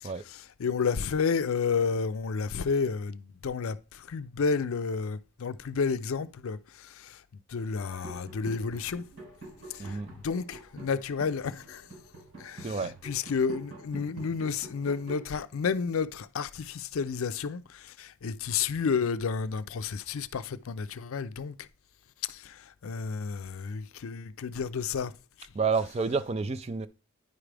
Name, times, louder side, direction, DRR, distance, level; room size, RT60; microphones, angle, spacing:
voice 1, 0.0-7.2 7.5-9.0 9.7-11.9 12.4-21.6 22.3-25.1, left 5 dB, 65° left, 0.4 m, -31 dB
sound 1, 7.8-15.3, right 2 dB, 85° right, 3.5 m, -46 dB
voice 2, 12.6-13.0 25.5-26.9, right 5 dB, 30° right, 0.3 m, -29 dB
9.6 x 4.9 x 3.3 m
head